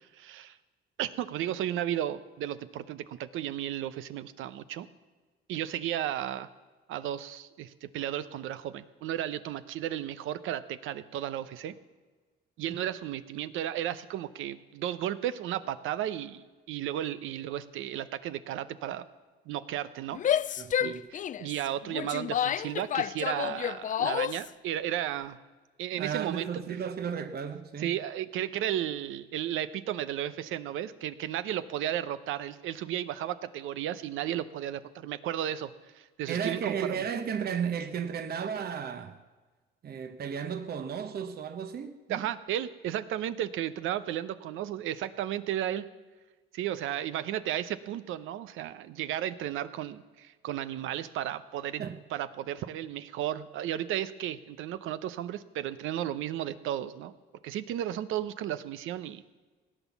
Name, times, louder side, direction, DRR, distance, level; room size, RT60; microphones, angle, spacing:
voice 1, 0.1-0.6 1.0-4.9 5.5-6.5 6.9-11.7 12.6-19.0 19.5-20.2 20.5-25.4 25.8-26.6 27.8-37.0 42.1-45.9 46.5-51.8 52.1-57.1 57.4-59.2, right 11 dB, 90° right, 0.7 m, -34 dB
Female speech woman speaking / Yell, 20.1-24.5, left 10 dB, 40° left, 0.4 m, -30 dB
voice 2, 20.6-21.1 25.9-28.0 36.3-39.2 39.8-42.2 51.8-52.0, right 7 dB, 50° right, 0.9 m, -34 dB
17.5 x 9.2 x 7.1 m
cardioid pair, 90°, 20 cm